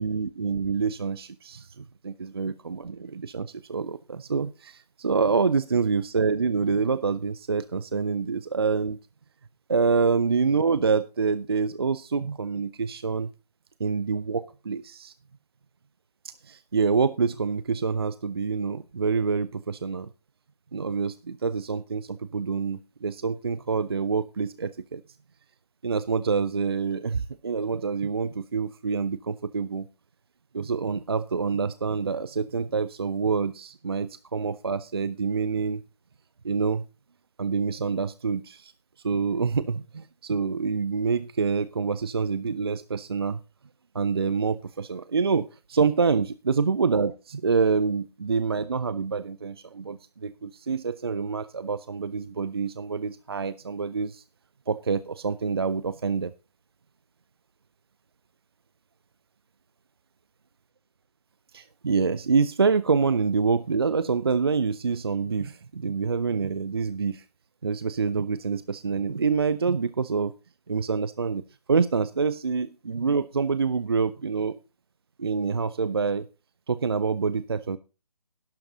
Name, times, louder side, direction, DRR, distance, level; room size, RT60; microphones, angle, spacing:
voice 1, 0.0-9.0 9.7-13.3 13.8-15.1 16.4-20.1 20.7-25.0 25.8-29.9 30.5-35.8 36.4-36.9 37.4-38.7 39.0-43.4 43.9-54.2 54.7-56.3 61.5-67.2 67.6-70.3 70.7-71.4 71.7-74.6 75.2-76.2 76.7-77.8, right 5 dB, 40° right, 15 dB, 0.4 m, -26 dB
12.5 x 11.5 x 2.6 m, 0.30 s
figure-of-eight pair, 150°, 20 cm